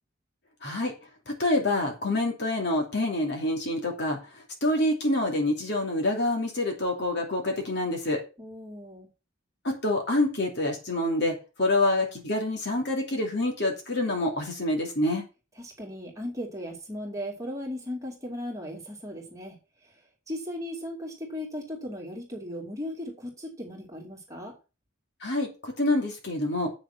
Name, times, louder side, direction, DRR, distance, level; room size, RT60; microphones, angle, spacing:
voice 1, 0.6-0.9 1.3-4.2 4.6-8.2 9.6-15.2 25.2-26.7, left 1 dB, 55° left, 1 dB, 2.9 m, -27 dB
voice 2, 8.4-9.1 15.6-19.6 20.3-24.6, left 1 dB, 15° right, 0 dB, 2.6 m, -37 dB
7.9 x 6.5 x 5.9 m, 0.31 s
head